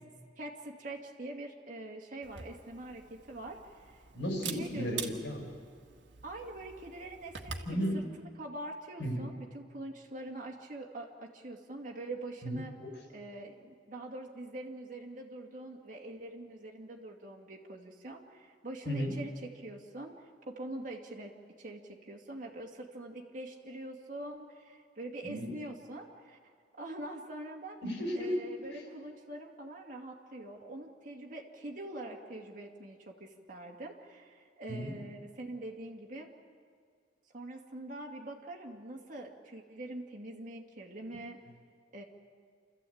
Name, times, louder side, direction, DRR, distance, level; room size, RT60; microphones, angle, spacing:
voice 1, 0.4-4.0 4.4-5.0 6.2-8.0 8.4-12.7 13.1-26.4 26.8-27.8 28.1-36.3 37.3-41.4 41.9-42.0, right 1 dB, 45° right, 0 dB, 2.4 m, -44 dB
Camera, 2.2-7.7, right 6 dB, 90° right, 1.6 m, -45 dB
voice 2, 4.1-5.5 7.6-8.0 9.0-9.2 12.4-12.5 12.8-12.9 18.8-19.1 25.2-25.5 27.8-28.4 28.6-28.8 34.7-34.9, equal, 80° left, 2 dB, 6.3 m, -34 dB
29.0 x 14.0 x 8.7 m, 2.1 s
head